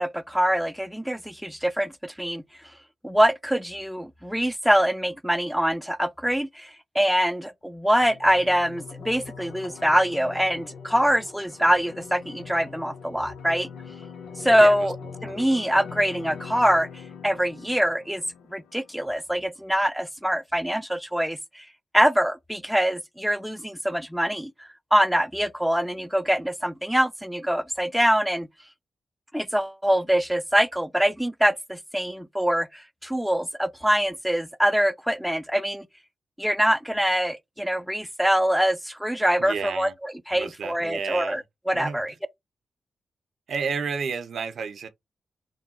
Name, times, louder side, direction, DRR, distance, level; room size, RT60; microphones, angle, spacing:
voice 1, 0.0-2.4 3.0-13.7 14.4-15.0 15.2-18.2 18.5-21.7 21.9-28.5 29.3-35.9 36.4-42.1, equal, 5° right, 0.5 m, -24 dB
sound 1, 8.0-19.0, left 6 dB, 90° left, 0.6 m, -42 dB
voice 2, 39.4-39.9 40.3-41.4 41.7-42.0 43.5-44.9, right 5 dB, 75° right, 0.6 m, -31 dB
3.7 x 2.2 x 4.2 m
supercardioid pair, 50°, 0 cm